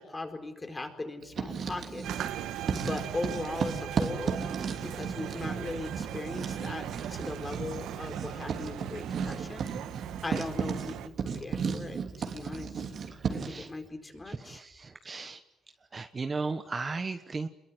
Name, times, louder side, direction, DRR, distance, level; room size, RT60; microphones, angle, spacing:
voice 1, 0.0-2.3 2.7-4.4 4.8-9.7 10.2-12.9 13.3-14.6, left 2 dB, 20° left, 5 dB, 4.5 m, -39 dB
Writing, 1.2-2.3 2.6-13.6, right 6 dB, 50° right, 3.0 m, -34 dB
sound 1, 2.0-11.1, right 11 dB, 85° right, 1.5 m, -39 dB
voice 2, 13.3-13.7 14.3-15.4 15.9-17.5, right 4 dB, 25° right, 9 dB, 1.2 m, -36 dB
27.5 x 22.0 x 9.5 m, 0.90 s
cardioid pair, 125°, 0 cm